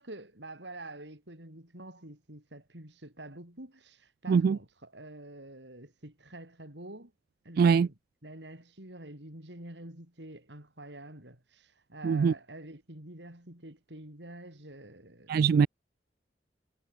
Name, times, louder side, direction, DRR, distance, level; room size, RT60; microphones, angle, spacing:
voice 1, 0.0-7.1 7.4-15.5, right 1 dB, 70° right, 6.6 m, -47 dB
voice 2, 7.6-7.9 12.0-12.3 15.3-15.7, right 6 dB, 55° right, 0.3 m, -22 dB
head